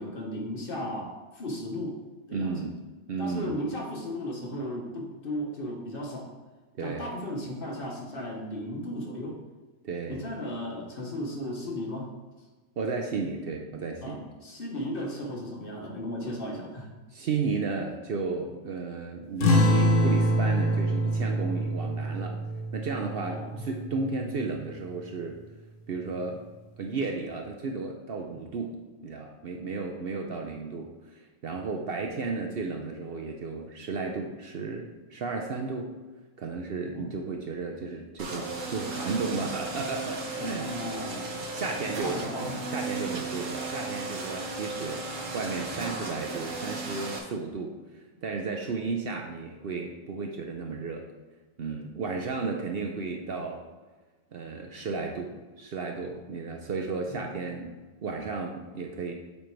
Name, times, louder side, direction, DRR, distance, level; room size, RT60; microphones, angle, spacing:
voice 1, 0.0-2.0 2.3-2.5 3.2-6.3 6.8-9.4 10.1-12.1 14.0-16.9 23.2-23.7 36.9-37.0 40.4-41.4 42.0-42.6 57.1-57.3, equal, 50° left, -1 dB, 1.2 m, -35 dB
voice 2, 2.3-2.8 3.1-3.6 6.8-7.0 9.8-10.2 12.8-14.3 17.1-22.4 22.7-25.4 25.9-26.4 26.8-35.9 36.4-40.7 41.5-42.2 42.7-45.0 45.3-47.7 48.2-51.1 51.6-53.6 54.3-57.7 58.0-59.1, right 4 dB, 60° right, 2 dB, 0.7 m, -33 dB
sound 1, 19.4-24.4, equal, 85° left, 1.2 m, -25 dB
sound 2, 38.2-47.2, right 3 dB, 85° right, 1.4 m, -35 dB
7.5 x 3.4 x 4.4 m, 1.2 s
omnidirectional pair, 1.3 m